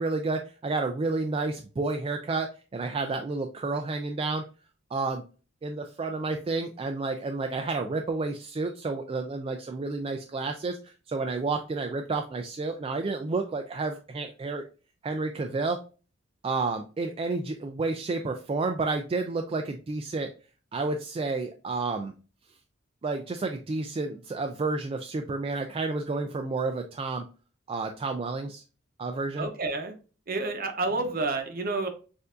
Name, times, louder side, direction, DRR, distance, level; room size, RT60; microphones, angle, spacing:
voice 1, 0.0-4.4 4.9-5.2 5.6-14.6 15.0-15.8 16.4-20.3 20.7-22.1 22.5-22.6 23.0-27.2 27.7-28.6 29.0-29.5, right 3 dB, 30° right, 4 dB, 0.3 m, -30 dB
voice 2, 29.4-29.9 30.3-31.9, right 3 dB, 45° right, 6 dB, 0.8 m, -29 dB
6.6 x 2.6 x 2.4 m, 0.35 s
head